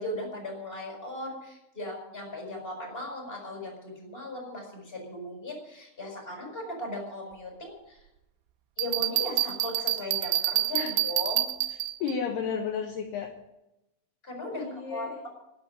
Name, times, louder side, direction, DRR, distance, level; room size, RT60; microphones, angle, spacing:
voice 1, 0.0-8.0 8.8-11.5 14.2-15.3, left 1 dB, 10° left, 0 dB, 5.8 m, -37 dB
Bell, 8.8-12.1, right 15 dB, 85° right, 3.2 m, -28 dB
voice 2, 12.0-13.3 14.5-15.2, left 6 dB, 70° left, 2 dB, 3.0 m, -32 dB
12.5 x 11.0 x 9.9 m, 0.91 s
omnidirectional pair, 5.4 m